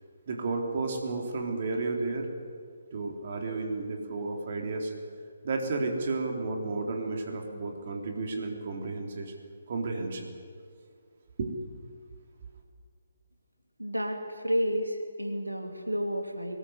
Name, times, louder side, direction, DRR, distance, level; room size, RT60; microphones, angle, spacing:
voice 1, 0.3-2.3 2.9-4.9 5.4-9.3 9.7-10.3 11.4-11.5, right 3 dB, 45° right, 2 dB, 3.7 m, -32 dB
voice 2, 13.8-16.6, equal, 90° right, 3 dB, 2.9 m, -31 dB
23.0 x 20.0 x 8.1 m, 2.1 s
figure-of-eight pair, 140°, 0 cm